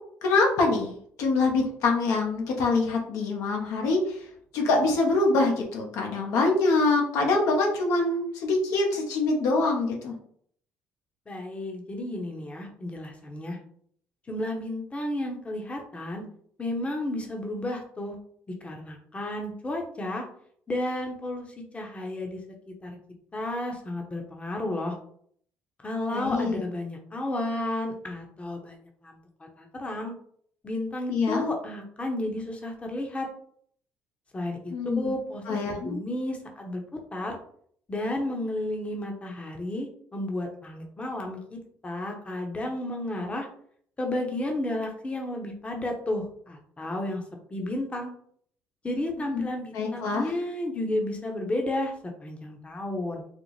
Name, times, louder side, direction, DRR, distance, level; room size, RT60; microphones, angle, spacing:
voice 1, 0.2-0.9 1.2-4.3 4.5-10.1 26.1-26.6 31.1-31.5 34.7-35.2 35.5-36.0 49.3-49.5 49.7-50.3, left 3 dB, 75° left, 0 dB, 0.9 m, -24 dB
voice 2, 11.3-13.6 14.3-16.2 16.6-18.2 18.6-20.2 20.7-22.4 22.8-23.0 23.3-25.0 25.8-30.1 30.6-33.3 34.3-36.8 37.1-37.4 37.9-41.6 41.8-43.5 44.0-47.2 47.5-48.1 48.8-51.9 52.2-53.3, left 1 dB, 25° left, 2 dB, 0.8 m, -32 dB
4.1 x 2.0 x 3.1 m, 0.62 s
supercardioid pair, 75°, 5 cm